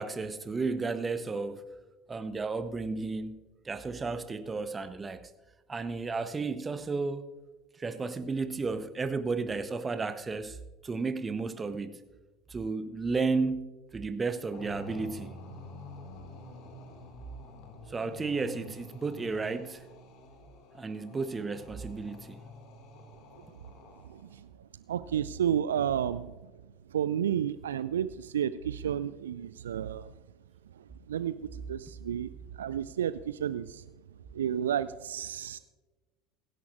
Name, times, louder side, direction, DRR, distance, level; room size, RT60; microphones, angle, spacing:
voice 1, 0.0-1.6 2.1-5.3 5.7-7.3 7.8-10.6 10.8-12.0 12.5-15.4 17.9-19.8 20.7-22.4, right 4 dB, 20° right, 0.7 m, -33 dB
sound 1, 14.5-24.4, left 2 dB, 50° left, 1.9 m, -48 dB
voice 2, 24.1-24.4 24.9-26.3 26.9-30.1 31.1-32.3 32.6-33.8 34.3-35.6, right 9 dB, 70° right, 0.3 m, -31 dB
23.0 x 11.0 x 2.4 m
figure-of-eight pair, 70°, 0 cm